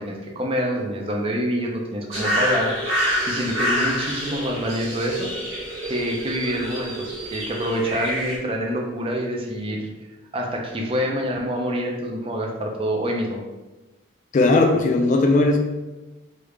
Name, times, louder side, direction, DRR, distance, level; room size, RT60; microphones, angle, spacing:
voice 1, 0.0-5.3 5.8-9.9 10.3-13.4, equal, 30° right, 0 dB, 0.4 m, -26 dB
sound 1, 2.1-8.4, equal, 75° right, 1.0 m, -27 dB
voice 2, 14.3-15.6, left 2 dB, 40° left, 2 dB, 0.3 m, -17 dB
3.2 x 2.4 x 3.2 m, 1.1 s
head